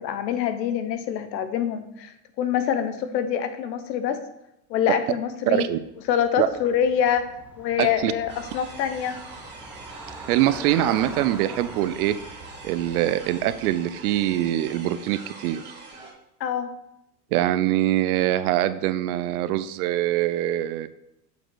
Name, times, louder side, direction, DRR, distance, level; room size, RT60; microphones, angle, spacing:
voice 1, 0.0-4.2 4.7-5.7 6.1-7.2 7.6-9.2 16.4-16.7, left 9 dB, 75° left, 10 dB, 1.0 m, -25 dB
voice 2, 5.5-5.8 6.4-6.5 7.8-8.1 10.3-12.2 12.6-15.6 17.3-20.9, right 13 dB, 65° right, 13 dB, 0.6 m, -23 dB
Traffic noise roadway noise / Bicycle, 5.8-14.9, right 2 dB, 5° right, 0.9 m, -43 dB
sound 1, 8.3-16.1, right 3 dB, 20° right, 1.9 m, -44 dB
7.1 x 4.5 x 3.9 m, 0.85 s
supercardioid pair, 120°, 50 cm